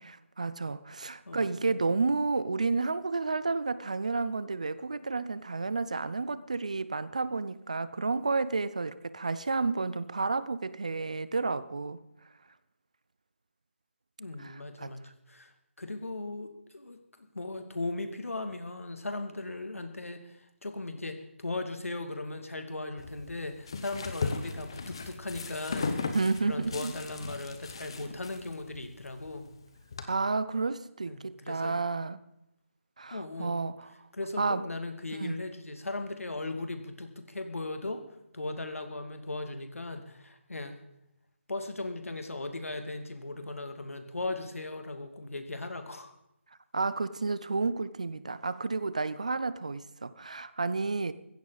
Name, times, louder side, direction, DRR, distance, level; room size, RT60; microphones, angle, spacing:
voice 1, 0.0-12.0 14.4-14.9 26.1-26.9 30.1-32.2 33.0-33.9 34.4-34.6 35.1-35.4 46.7-51.1, right 3 dB, 30° right, 16 dB, 0.4 m, -31 dB
voice 2, 1.3-1.7 14.2-15.0 15.3-15.5 15.8-17.0 17.3-26.0 26.4-29.5 31.1-31.8 33.1-33.6 34.1-38.0 38.3-40.8 41.5-46.1, left 2 dB, 85° left, 7 dB, 2.3 m, -38 dB
sound 1, 23.0-30.0, left 4 dB, 20° left, 0.8 m, -38 dB
15.5 x 14.0 x 4.0 m, 0.84 s
figure-of-eight pair, 175°, 7 cm